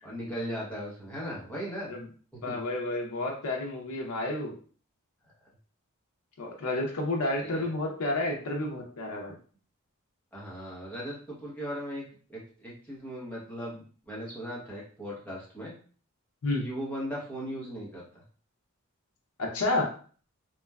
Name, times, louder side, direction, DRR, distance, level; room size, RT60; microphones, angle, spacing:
voice 1, 0.0-1.9 2.3-2.6 7.4-7.7 10.3-12.0 12.3-15.7 16.6-18.2, equal, 5° left, -6 dB, 0.8 m, -38 dB
voice 2, 2.4-4.5 6.4-9.3 16.4-16.7 19.4-19.9, left 2 dB, 80° left, -1 dB, 0.6 m, -30 dB
2.9 x 2.2 x 2.3 m, 0.42 s
head